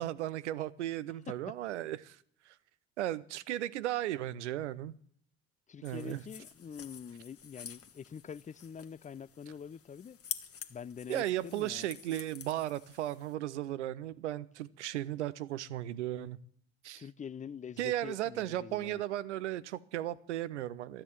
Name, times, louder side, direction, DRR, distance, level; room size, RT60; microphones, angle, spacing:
voice 1, 0.0-2.2 3.0-4.9 5.8-6.2 11.1-16.4 16.8-17.0 17.8-21.0, right 13 dB, 90° right, 0.6 m, -35 dB
voice 2, 5.7-10.2 10.7-11.9 17.0-19.0, left 7 dB, 20° left, 0.5 m, -45 dB
sound 1, 5.8-13.3, left 8 dB, 45° left, 1.6 m, -48 dB
13.0 x 8.9 x 9.4 m
hypercardioid pair, 50°, 34 cm